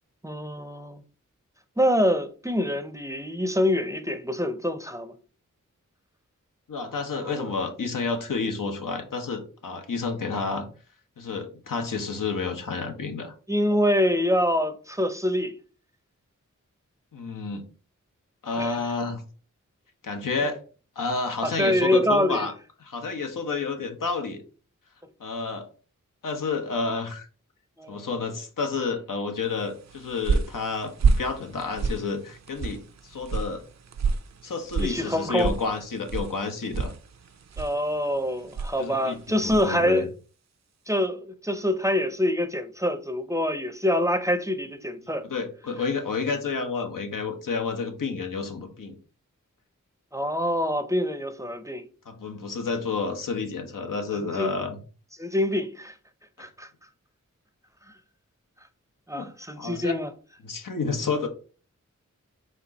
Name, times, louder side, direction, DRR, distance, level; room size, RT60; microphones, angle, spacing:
voice 1, 0.2-1.0 1.8-5.1 7.2-7.5 13.5-15.5 18.6-18.8 21.4-22.5 27.8-28.1 34.8-35.6 37.6-40.1 40.9-45.3 50.1-51.9 54.1-54.6 55.2-56.0 56.4-56.7 59.1-60.1, left 1 dB, 10° right, 0.5 m, -25 dB
voice 2, 6.7-10.7 11.2-13.3 17.1-17.6 18.4-19.2 20.0-20.6 21.0-22.5 22.8-24.4 25.2-25.7 26.2-27.3 27.9-33.6 34.4-36.9 38.8-39.2 39.4-40.0 45.2-49.0 52.1-54.8 59.1-59.3 59.6-60.0 60.4-61.3, left 4 dB, 80° left, 0.8 m, -30 dB
sound 1, 29.7-39.8, right 4 dB, 60° right, 0.5 m, -30 dB
4.3 x 2.5 x 4.0 m
wide cardioid pair, 45°, 32 cm